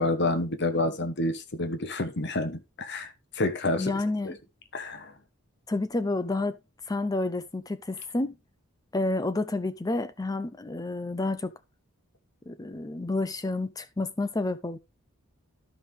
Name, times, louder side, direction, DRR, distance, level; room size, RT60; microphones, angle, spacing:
voice 1, 0.0-3.9 4.2-4.3 4.7-5.1, left 2 dB, 50° left, 1.1 m, -29 dB
voice 2, 3.8-4.4 5.7-6.6 6.9-8.4 8.9-11.5 12.5-14.8, left 2 dB, 15° left, 0.4 m, -29 dB
12.0 x 5.5 x 3.2 m
head